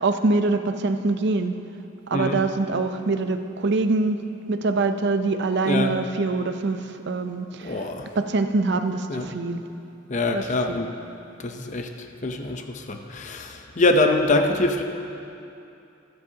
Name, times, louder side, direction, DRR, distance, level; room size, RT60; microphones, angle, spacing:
voice 1, 0.0-1.6 2.1-4.2 4.5-7.7 8.2-9.6 10.3-10.8, right 3 dB, 60° right, 7 dB, 0.6 m, -24 dB
voice 2, 2.1-2.4 5.6-6.0 7.6-8.1 9.1-9.3 10.1-10.9 11.4-14.8, left 2 dB, 40° left, 5 dB, 0.6 m, -24 dB
23.5 x 7.8 x 2.8 m, 2.7 s
head